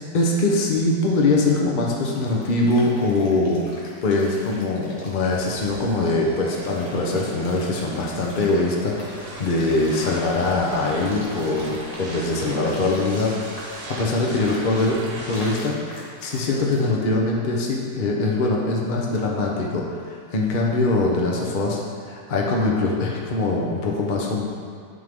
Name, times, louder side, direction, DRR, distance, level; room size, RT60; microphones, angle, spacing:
voice 1, 0.1-3.6 4.0-21.8 22.0-24.4, left 2 dB, 40° left, -2 dB, 0.7 m, -23 dB
sound 1, 1.8-16.8, left 1 dB, 80° left, 2.0 m, -43 dB
sound 2, 5.3-15.6, right 2 dB, 65° right, 1.4 m, -39 dB
11.0 x 3.7 x 3.6 m, 2.1 s
omnidirectional pair, 1.9 m